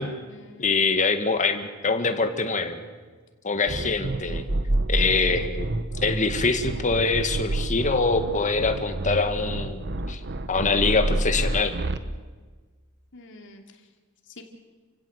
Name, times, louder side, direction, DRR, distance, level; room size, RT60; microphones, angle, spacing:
voice 1, 0.0-0.7 13.1-13.8 14.3-14.4, left 2 dB, 60° left, 4 dB, 2.8 m, -47 dB
voice 2, 0.6-2.8 3.4-4.4 4.9-5.7 6.0-10.2 10.5-11.7, left 4 dB, 35° left, 7 dB, 1.8 m, -24 dB
sound 1, 3.7-12.0, right 2 dB, 50° right, 1.1 m, -28 dB
29.5 x 16.0 x 8.1 m, 1.4 s
head